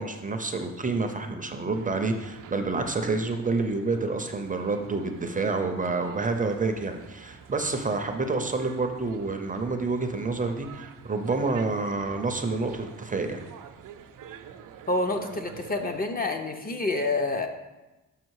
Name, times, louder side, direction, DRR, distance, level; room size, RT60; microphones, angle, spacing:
voice 1, 0.0-13.4, right 3 dB, 25° right, 5 dB, 0.5 m, -28 dB
sound 1, 1.7-16.0, right 8 dB, 70° right, 0.6 m, -48 dB
voice 2, 14.9-17.5, left 2 dB, 25° left, 5 dB, 0.5 m, -28 dB
6.5 x 5.7 x 4.6 m, 1.1 s
wide cardioid pair, 145°, 33 cm